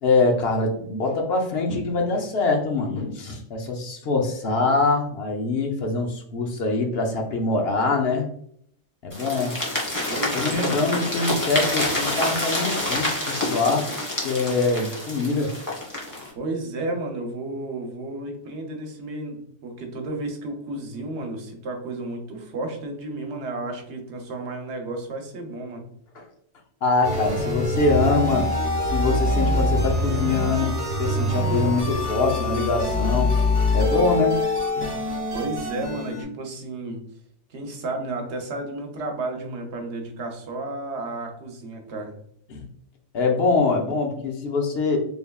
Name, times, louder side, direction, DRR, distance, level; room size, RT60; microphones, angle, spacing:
voice 1, 0.0-8.3 9.0-9.5 10.3-13.9 14.2-15.5 26.1-26.3 26.8-28.5 28.8-30.7 31.0-33.3 33.7-34.4 34.8-35.0 42.5-42.7 43.1-45.0, left 3 dB, 60° left, 2 dB, 0.9 m, -24 dB
sound 1, 9.1-16.3, left 1 dB, 15° left, 1.0 m, -27 dB
voice 2, 10.1-10.7 16.3-25.8 35.3-37.0 37.5-42.1, right 2 dB, 70° right, 3 dB, 1.0 m, -32 dB
sound 2, 27.0-36.2, left 1 dB, 20° right, 1.1 m, -24 dB
3.5 x 3.3 x 2.2 m, 0.66 s
omnidirectional pair, 1.2 m